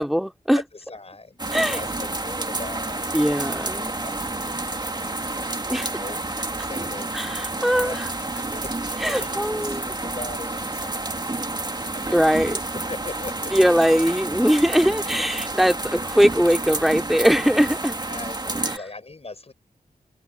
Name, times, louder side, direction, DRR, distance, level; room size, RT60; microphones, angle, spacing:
voice 1, 0.0-0.6 1.5-1.8 3.1-3.9 5.7-6.0 7.1-8.0 9.0-9.8 12.1-12.6 13.5-18.0, equal, ahead, 2.7 m, -21 dB
voice 2, 0.5-6.2 6.5-7.1 7.6-13.5 18.1-19.5, left 3 dB, 40° left, 5.9 m, -40 dB
sound 1, 1.4-18.8, right 2 dB, 25° right, 2.2 m, -30 dB
cardioid pair, 65°, 16 cm